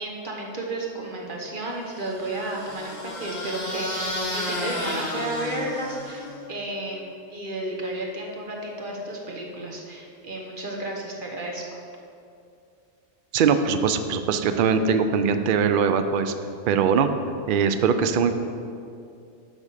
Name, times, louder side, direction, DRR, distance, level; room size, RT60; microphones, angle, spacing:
voice 1, 0.0-11.6, right 1 dB, 40° right, -1 dB, 1.3 m, -32 dB
sound 1, 1.9-6.5, left 1 dB, 70° left, 2.5 m, -32 dB
voice 2, 13.3-16.3 16.7-17.1 17.5-18.3, right 6 dB, 60° right, 8 dB, 0.5 m, -21 dB
10.5 x 3.7 x 6.6 m, 2.5 s
omnidirectional pair, 1.4 m